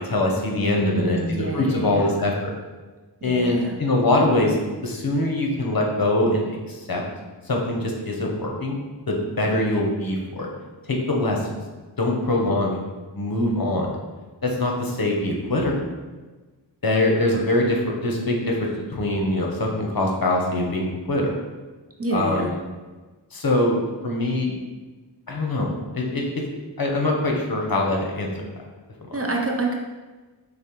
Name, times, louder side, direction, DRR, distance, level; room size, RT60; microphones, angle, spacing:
voice 1, 0.0-2.5 3.2-4.6 4.8-7.0 7.5-8.8 9.1-10.5 10.9-11.6 12.0-12.8 13.1-14.0 14.4-15.8 16.8-21.3 22.1-22.6 23.3-24.6 25.3-26.4 26.8-28.5, left 1 dB, 50° left, 0 dB, 0.8 m, -23 dB
voice 2, 0.6-2.1 3.2-3.8 22.0-22.5 29.1-29.7, right 2 dB, 30° right, 0 dB, 0.6 m, -27 dB
6.1 x 2.2 x 3.0 m, 1.3 s
wide cardioid pair, 45°, 45 cm